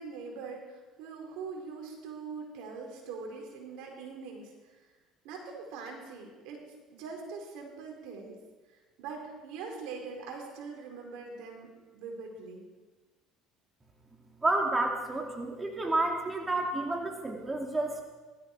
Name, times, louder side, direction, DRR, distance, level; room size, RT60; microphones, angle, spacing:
voice 1, 0.0-4.5 5.2-8.4 9.0-12.6, right 4 dB, 75° right, 1 dB, 4.6 m, -42 dB
voice 2, 14.4-18.0, right 2 dB, 15° right, 1 dB, 2.6 m, -30 dB
19.5 x 14.0 x 4.9 m, 1.3 s
supercardioid pair, 95°, 0 cm